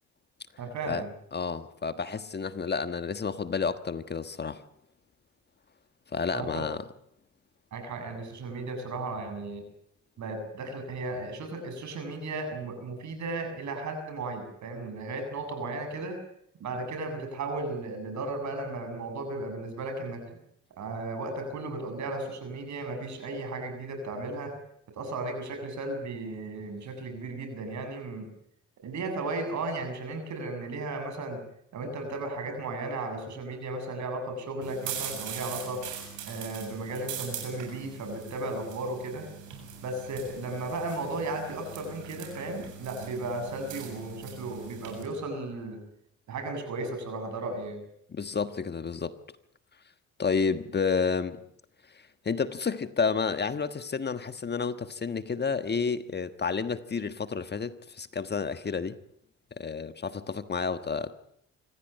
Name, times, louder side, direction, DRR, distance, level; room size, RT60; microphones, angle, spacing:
voice 1, 0.6-1.1 6.3-6.7 7.7-9.6 10.2-16.2 16.6-20.2 20.8-24.5 24.9-28.3 28.8-31.4 31.7-35.8 36.2-39.3 39.8-45.8 46.3-47.8, right 2 dB, 70° right, 7.4 m, -35 dB
voice 2, 1.3-4.6 6.1-6.8 48.1-49.2 50.2-51.4 52.2-59.0 59.6-61.1, left 5 dB, 35° left, 1.4 m, -30 dB
sound 1, 34.6-45.0, right 7 dB, 85° right, 7.4 m, -41 dB
26.0 x 15.5 x 9.0 m
cardioid pair, 90°, 30 cm